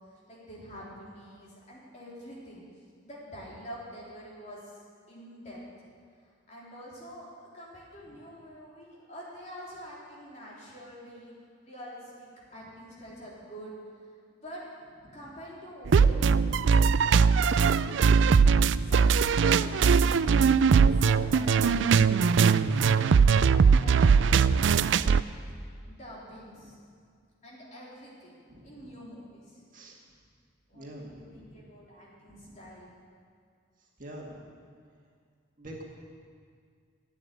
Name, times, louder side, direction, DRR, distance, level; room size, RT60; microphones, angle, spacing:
voice 1, 0.3-2.6 3.0-4.8 5.1-5.6 6.2-11.3 11.6-13.7 14.1-14.6 15.1-18.2 18.8-20.4 20.7-25.3 25.8-26.7 27.4-29.6 30.7-32.9, equal, 35° left, -6 dB, 3.7 m, -46 dB
sound 1, 15.9-25.2, right 6 dB, 70° right, 0.4 m, -21 dB
voice 2, 28.5-28.9 29.7-30.0 30.7-31.6 32.3-32.6 34.0-34.5 35.6-35.8, right 1 dB, 40° right, -2 dB, 2.0 m, -45 dB
12.0 x 8.9 x 9.7 m, 2.1 s
head